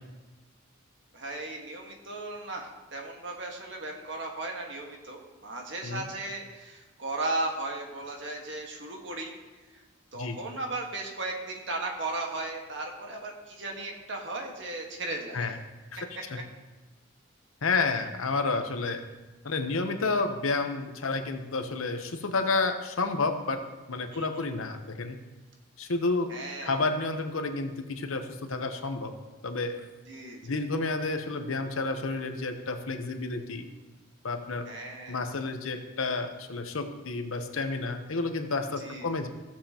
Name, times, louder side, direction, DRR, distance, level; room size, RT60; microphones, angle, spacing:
voice 1, 1.1-9.3 9.7-9.8 10.1-15.6 24.1-24.3 26.3-26.8 30.1-30.5 34.7-35.2 38.8-39.1, right 2 dB, 60° right, 1 dB, 1.5 m, -36 dB
voice 2, 17.6-19.0 19.4-23.6 23.9-25.2 25.8-26.3 26.6-29.1 29.4-29.8 30.4-33.7 34.2-34.6 35.1-39.3, left 3 dB, 85° left, 6 dB, 0.9 m, -30 dB
15.0 x 7.4 x 2.9 m, 1.2 s
head